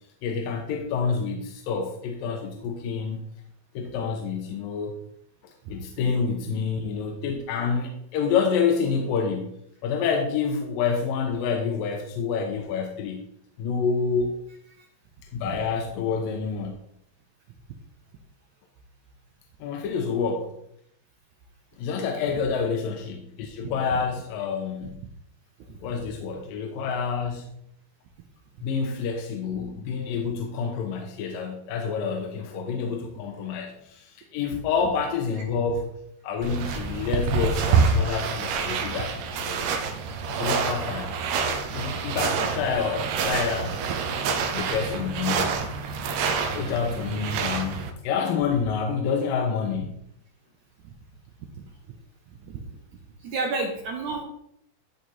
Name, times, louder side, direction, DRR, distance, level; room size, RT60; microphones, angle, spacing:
voice 1, 0.2-3.2 3.7-5.0 5.7-13.3 13.6-14.4 15.3-16.7 19.6-20.5 21.8-25.0 25.8-27.5 28.6-36.0 36.2-39.7 40.3-41.2 41.7-43.8 44.5-45.5 46.5-49.9, left 5 dB, 75° left, 2 dB, 2.3 m, -28 dB
sound 1, 36.4-47.9, right 5 dB, 85° right, 3.0 m, -27 dB
voice 2, 53.2-54.2, right 3 dB, 70° right, 1 dB, 2.0 m, -32 dB
13.0 x 5.1 x 4.2 m, 0.74 s
omnidirectional pair, 4.5 m